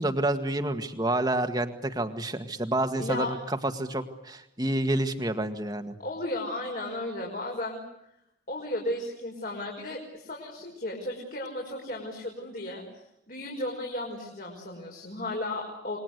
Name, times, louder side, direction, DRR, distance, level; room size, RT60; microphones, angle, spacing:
voice 1, 0.0-5.9, right 1 dB, 20° right, 7 dB, 1.9 m, -29 dB
voice 2, 3.0-3.4 6.0-7.9 8.5-12.8 13.3-16.0, left 1 dB, 50° left, -1 dB, 5.6 m, -34 dB
28.0 x 22.0 x 8.2 m, 0.81 s
head